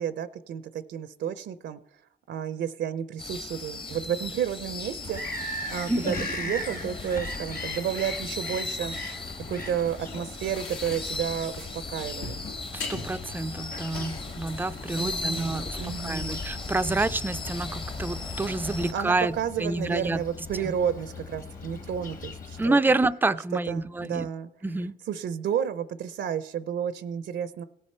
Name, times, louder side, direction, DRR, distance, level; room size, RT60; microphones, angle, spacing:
voice 1, 0.0-1.8 2.3-5.4 5.7-9.0 9.5-12.4 14.9-16.4 18.8-22.9 23.7-24.5 25.1-27.6, right 8 dB, 65° right, 13 dB, 0.5 m, -31 dB
sound 1, 3.2-18.9, left 3 dB, 25° left, 0.9 m, -37 dB
Bird vocalization bird call bird song, 5.0-22.7, left 2 dB, 45° left, 1.4 m, -39 dB
voice 2, 5.9-6.3 12.7-19.3 19.6-20.2 22.6-24.3 24.6-24.9, right 2 dB, 10° right, 14 dB, 0.3 m, -28 dB
sound 2, 10.5-16.5, left 4 dB, 80° left, 1.8 m, -42 dB
17.5 x 6.5 x 4.3 m, 0.78 s
cardioid pair, 90°, 20 cm